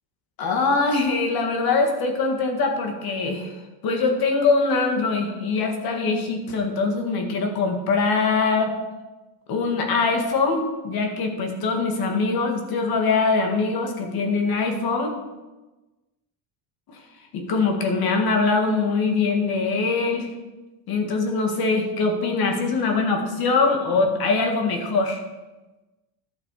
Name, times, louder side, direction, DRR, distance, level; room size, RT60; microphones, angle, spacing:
voice 1, 0.4-3.6 3.8-8.7 9.5-15.1 16.9-17.0 17.3-20.3 20.9-25.2, left 4 dB, 50° left, 4 dB, 1.9 m, -23 dB
12.0 x 6.7 x 4.9 m, 1.1 s
cardioid pair, 145°, 48 cm